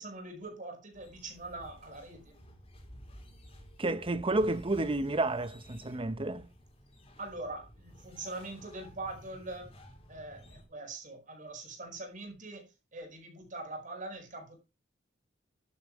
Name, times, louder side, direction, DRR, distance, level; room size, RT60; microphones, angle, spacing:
voice 1, 0.0-2.3 7.2-9.7 10.1-14.6, right 2 dB, 45° right, 5.0 m, -43 dB
sound 1, 0.9-10.7, equal, 30° left, 3.1 m, -54 dB
voice 2, 3.8-6.5, right 2 dB, 30° right, 0.9 m, -30 dB
11.5 x 9.1 x 4.7 m
head